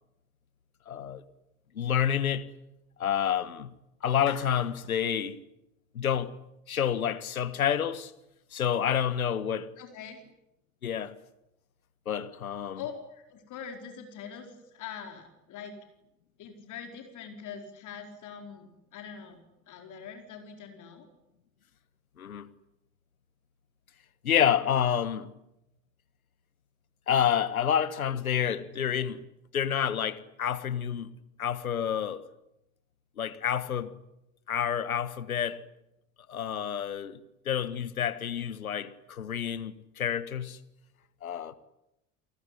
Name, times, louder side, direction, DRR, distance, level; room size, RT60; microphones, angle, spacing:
voice 1, 0.9-1.2 1.7-2.5 3.0-3.7 4.0-5.4 5.9-6.3 6.7-8.1 8.5-9.7 10.8-11.1 12.1-12.8 22.2-22.5 24.2-25.3 27.1-29.3 29.5-31.1 31.4-32.2 33.2-34.0 34.5-35.6 36.3-37.2 37.4-40.6 41.2-41.5, left 9 dB, 80° left, 1.5 m, -28 dB
Clapping, 4.3-4.9, left 7 dB, 60° left, 6.1 m, -47 dB
voice 2, 9.8-10.2 12.8-15.8 16.4-19.4 19.7-21.1, left 7 dB, 45° left, 4.5 m, -43 dB
29.5 x 19.0 x 9.9 m
figure-of-eight pair, 70°, 42 cm